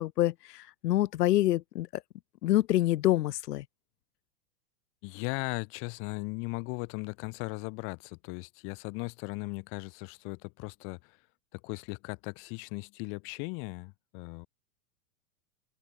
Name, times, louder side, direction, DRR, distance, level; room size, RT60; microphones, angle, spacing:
voice 1, 0.0-1.9 2.4-3.6, left 15 dB, 85° left, 1.1 m, -26 dB
voice 2, 5.0-11.2 11.5-14.5, left 35 dB, 25° left, 0.9 m, -38 dB
open air
supercardioid pair, 165°, 47 cm